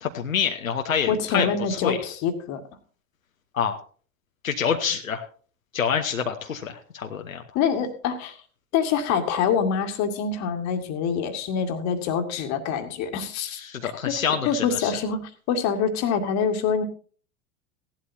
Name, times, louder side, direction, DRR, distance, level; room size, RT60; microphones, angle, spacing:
voice 1, 0.0-2.0 3.5-3.8 4.4-5.2 5.7-7.4 13.6-14.9, left 7 dB, 80° left, 4 dB, 1.1 m, -27 dB
voice 2, 1.1-2.6 7.5-8.4 8.7-16.8, left 6 dB, 45° left, 8 dB, 1.9 m, -25 dB
17.0 x 11.5 x 2.8 m, 0.42 s
figure-of-eight pair, 80°, 40 cm